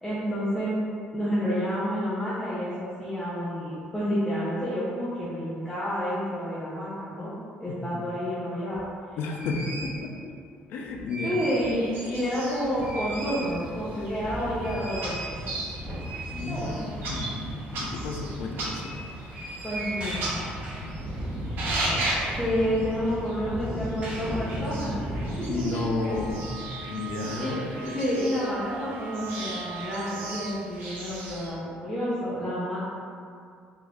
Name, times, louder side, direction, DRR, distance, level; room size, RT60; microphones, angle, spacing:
voice 1, 0.0-0.7 1.1-7.3 7.6-8.8 11.2-15.2 16.5-16.8 19.6-20.3 22.4-25.8 27.3-32.8, equal, 5° left, -11 dB, 0.7 m, -29 dB
voice 2, 7.7-8.0 9.2-10.3 10.7-11.4 16.3-19.0 25.5-27.7, left 3 dB, 75° left, 1 dB, 0.4 m, -32 dB
sound 1, 8.7-8.8 9.3-10.0 10.8-11.8 12.2-12.3 12.6-26.5, right 1 dB, 30° right, 0.9 m, -36 dB
sound 2, 11.6-31.5, right 2 dB, 70° right, 0.8 m, -37 dB
Wind instrument woodwind instrument, 26.0-30.8, right 8 dB, 55° right, 0.3 m, -42 dB
3.1 x 2.5 x 3.5 m, 2.3 s
cardioid pair, 125°, 3 cm